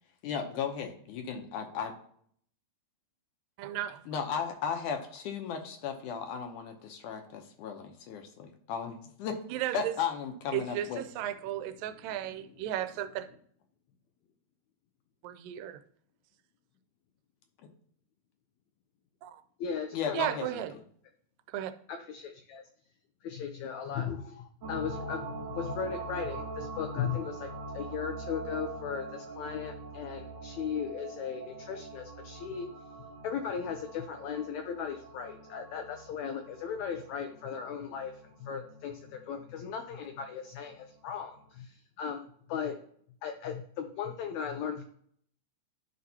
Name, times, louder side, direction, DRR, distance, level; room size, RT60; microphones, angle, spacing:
voice 1, 0.2-1.9 4.1-9.4 9.7-11.0 19.9-20.6, left 6 dB, 75° left, 5 dB, 2.1 m, -35 dB
voice 2, 3.6-4.0 9.5-9.9 10.5-13.3 15.2-15.8 19.2-19.3 20.1-20.7 21.5-21.7, right 12 dB, 85° right, 10 dB, 2.2 m, -34 dB
voice 3, 19.6-20.4 21.9-22.6 23.2-32.7 33.2-38.1 38.4-42.2 42.5-42.7 43.2-44.8, left 7 dB, 90° left, 6 dB, 1.6 m, -37 dB
sound 1, 24.6-40.3 40.7-40.8, right 3 dB, 60° right, 2.2 m, -44 dB
12.5 x 5.1 x 2.8 m, 0.62 s
omnidirectional pair, 3.9 m